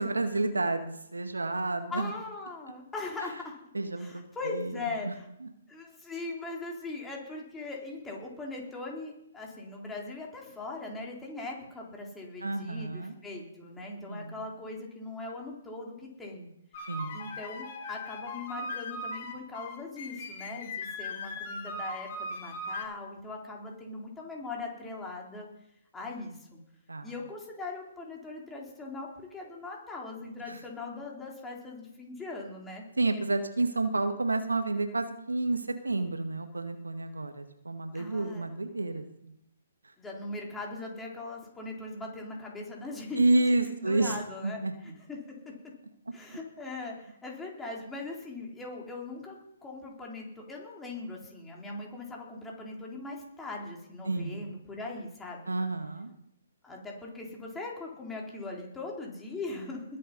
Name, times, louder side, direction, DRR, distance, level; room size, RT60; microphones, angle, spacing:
voice 1, 0.0-2.1 3.7-4.8 5.0-5.1 5.4-5.5 12.4-13.2 14.1-14.5 16.9-17.3 26.9-27.1 30.5-30.6 33.0-39.3 39.8-39.9 43.2-44.2 44.4-44.7 54.0-54.5 55.5-56.1, right 2 dB, 90° right, 7 dB, 1.9 m, -30 dB
voice 2, 1.9-3.6 4.0-5.3 5.7-16.5 17.1-25.5 25.9-26.6 27.0-32.8 37.9-38.5 40.0-43.2 43.7-45.2 46.1-49.4 49.6-55.5 56.6-59.8, left 3 dB, 10° left, -1 dB, 3.9 m, -40 dB
sound 1, 16.7-22.8, left 2 dB, 45° left, 2.6 m, -39 dB
21.0 x 7.7 x 5.5 m, 0.79 s
figure-of-eight pair, 135°, 0 cm